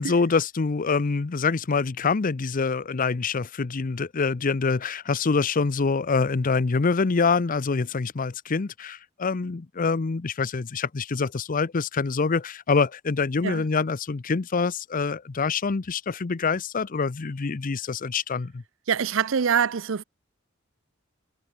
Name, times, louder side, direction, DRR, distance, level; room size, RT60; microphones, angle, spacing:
voice 1, 0.0-18.6, left 4 dB, 45° left, 0.6 m, -25 dB
voice 2, 18.9-20.0, right 7 dB, 70° right, 0.6 m, -24 dB
head